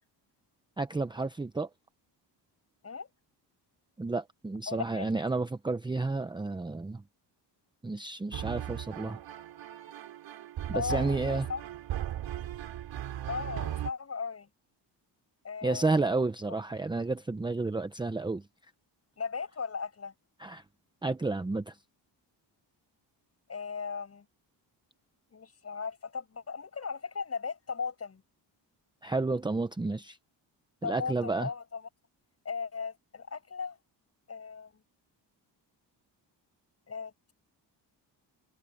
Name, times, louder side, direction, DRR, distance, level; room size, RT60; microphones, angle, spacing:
voice 1, 0.8-1.7 4.0-7.0 7.8-9.2 10.7-11.5 15.6-18.5 20.4-20.6 21.0-21.8 29.0-30.2 30.8-31.5, right 3 dB, 10° right, 0.8 m, -31 dB
voice 2, 4.7-5.1 10.7-11.6 13.3-14.5 15.4-15.9 16.5-16.6 19.2-20.1 23.5-24.3 25.3-28.2 30.8-31.9 32.4-33.8 34.3-34.7 36.9-37.3, left 5 dB, 35° left, 7.2 m, -37 dB
sound 1, 8.3-13.9, right 12 dB, 85° right, 3.6 m, -37 dB
cardioid pair, 140°, 43 cm